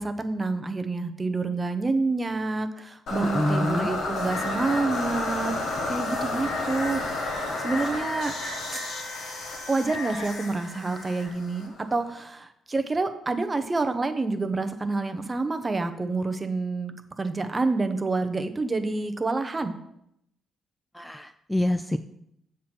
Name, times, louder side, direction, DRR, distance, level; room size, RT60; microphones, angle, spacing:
voice 1, 0.0-5.5 5.9-7.0 7.6-8.3 8.7-8.8 9.7-16.9 17.2-19.8, right 3 dB, 25° right, 8 dB, 0.8 m, -28 dB
sound 1, 3.1-12.1, left 2 dB, 75° left, 1.6 m, -31 dB
voice 2, 3.2-3.9 20.9-22.0, left 1 dB, 5° left, 9 dB, 0.3 m, -26 dB
7.3 x 4.3 x 6.0 m, 0.77 s
cardioid pair, 90°, 0 cm